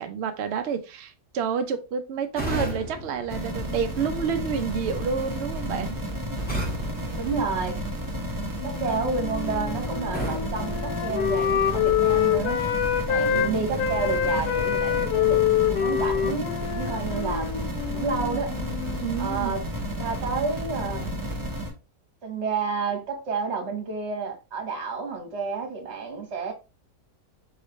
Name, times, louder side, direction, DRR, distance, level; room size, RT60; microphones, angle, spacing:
voice 1, 0.0-6.0 13.1-13.9 19.0-19.5, right 6 dB, 85° right, 0.5 m, -29 dB
sound 1, 2.3-4.3 6.5-8.2 10.1-11.7, equal, 5° left, 1.1 m, -35 dB
sound 2, 3.3-21.7, equal, 20° right, 0.6 m, -32 dB
voice 2, 7.1-7.7 8.6-12.6 13.1-15.4 15.8-17.6 17.9-18.5 19.2-19.6 20.0-21.1 22.2-26.5, right 4 dB, 45° right, 1.3 m, -30 dB
Wind instrument woodwind instrument, 8.6-13.5 13.8-19.1, left 10 dB, 75° left, 1.2 m, -26 dB
4.7 x 3.2 x 3.0 m
omnidirectional pair, 1.8 m